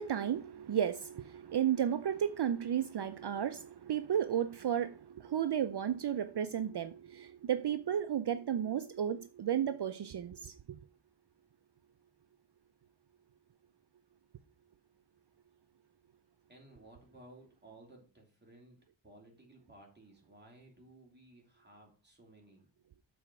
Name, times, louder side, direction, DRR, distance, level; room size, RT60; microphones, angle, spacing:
voice 1, 0.0-10.5, right 9 dB, 55° right, 0.5 m, -33 dB
voice 2, 16.5-18.8 19.0-22.7, right 1 dB, 20° right, 2.8 m, -57 dB
7.1 x 4.3 x 5.9 m
wide cardioid pair, 95°, 48 cm